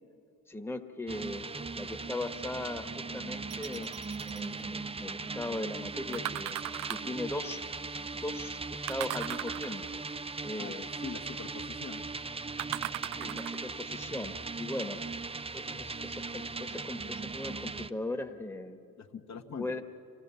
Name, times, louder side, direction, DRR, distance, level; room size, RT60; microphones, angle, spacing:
voice 1, 0.5-1.4 1.7-6.6 6.9-7.6 8.1-10.0 10.4-10.9 13.2-15.0 15.5-18.8 19.6-19.8, left 2 dB, 5° left, 4 dB, 1.5 m, -39 dB
sound 1, 1.1-17.9, right 4 dB, 15° right, 0.6 m, -39 dB
sound 2, 3.5-4.4 6.1-7.2 8.9-10.0 12.6-13.7 14.4-14.5, right 15 dB, 55° right, 0.5 m, -38 dB
voice 2, 10.6-12.0 19.0-19.7, left 5 dB, 45° left, 4 dB, 1.5 m, -43 dB
27.0 x 16.5 x 7.1 m, 2.9 s
hypercardioid pair, 60°, 40 cm